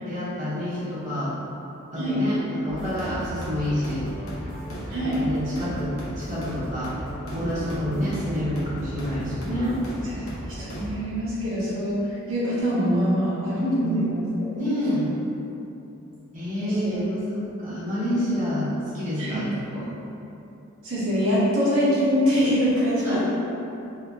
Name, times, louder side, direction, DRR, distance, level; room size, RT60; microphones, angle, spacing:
voice 1, 0.1-1.3 1.9-4.0 4.7-7.0 7.3-9.8 13.6-14.1 14.5-15.1 16.3-18.7 18.9-19.9 23.0-23.2, equal, 40° right, -11 dB, 1.1 m, -28 dB
sound 1, 2.7-10.9, equal, 85° left, 1.0 m, -35 dB
voice 2, 4.9-5.2 10.0-10.1 10.6-14.5 16.6-17.0 19.2-19.4 20.8-23.2, equal, 70° right, -10 dB, 1.1 m, -24 dB
3.6 x 3.6 x 2.8 m, 2.9 s
head